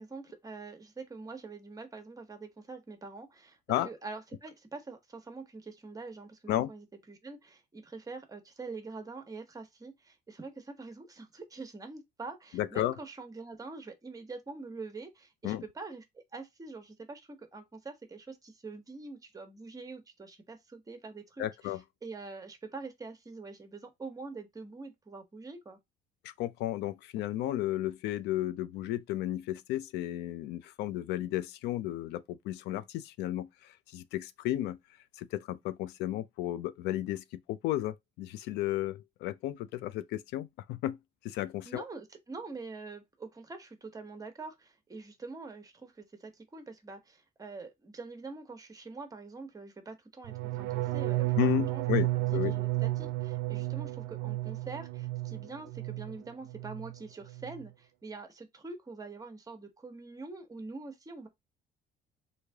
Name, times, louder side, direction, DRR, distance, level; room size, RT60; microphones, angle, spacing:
voice 1, 0.0-3.6 3.8-25.8 41.6-61.3, right 3 dB, 20° right, 1.0 m, -45 dB
voice 2, 12.5-13.0 15.4-15.6 21.4-21.8 26.2-34.8 35.2-41.0 41.2-41.8 51.4-52.6, left 14 dB, 85° left, 0.4 m, -33 dB
sound 1, 50.2-56.2 56.5-57.0 57.3-57.6, right 18 dB, 85° right, 0.4 m, -32 dB
3.2 x 2.7 x 3.4 m
cardioid pair, 110°, 17 cm